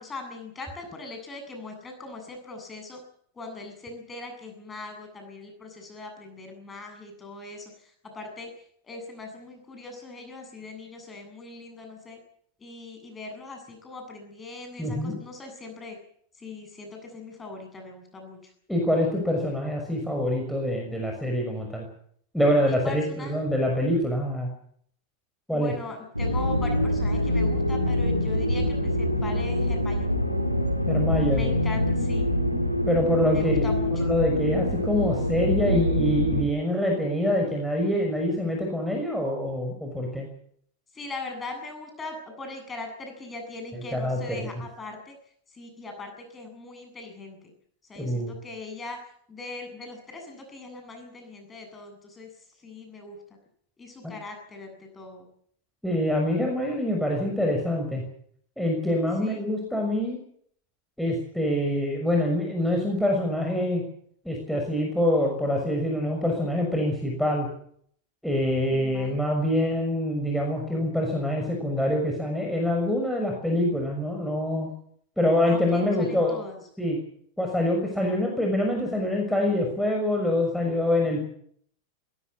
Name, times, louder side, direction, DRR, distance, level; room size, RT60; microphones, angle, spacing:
voice 1, 0.0-3.0 3.3-8.5 8.8-12.2 12.6-16.0 16.4-18.5 22.6-23.3 25.5-30.2 31.3-32.3 33.3-33.9 40.9-45.2 45.5-47.4 47.9-49.0 49.3-52.3 52.6-53.2 53.8-55.3 59.2-59.4 68.7-69.2 75.5-76.6, left 3 dB, 15° left, 5 dB, 8.0 m, -40 dB
voice 2, 14.8-15.2 18.7-21.9 22.3-24.5 25.5-25.7 30.9-31.6 32.8-33.6 34.0-40.3 43.7-44.5 48.0-48.3 54.0-54.2 55.8-58.0 58.6-60.2 61.0-63.8 64.2-67.5 68.2-74.7 75.2-76.4 76.8-77.0 77.4-81.2, left 1 dB, ahead, 0 dB, 6.3 m, -25 dB
sound 1, 26.1-36.4, left 1 dB, 90° right, 3.2 m, -25 dB
20.5 x 18.0 x 8.5 m, 0.65 s
figure-of-eight pair, 90°, 0 cm